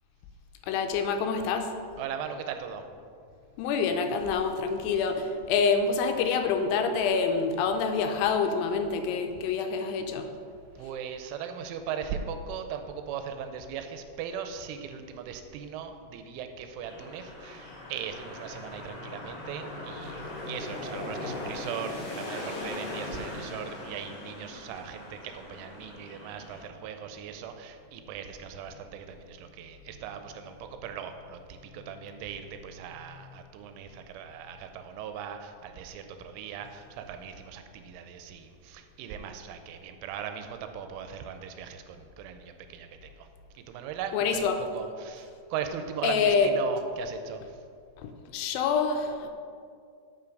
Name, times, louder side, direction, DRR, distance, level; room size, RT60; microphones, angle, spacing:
voice 1, 0.7-1.7 3.6-10.3 44.1-44.6 46.0-46.5 48.0-49.3, left 5 dB, 85° left, 6 dB, 2.9 m, -27 dB
voice 2, 2.0-2.8 10.8-43.3 43.6-44.5 44.7-47.4, right 7 dB, 85° right, 7 dB, 3.0 m, -39 dB
sound 1, 16.8-26.6, left 2 dB, 65° left, 1.6 m, -39 dB
8.3 x 5.7 x 5.2 m, 2.3 s
omnidirectional pair, 5.6 m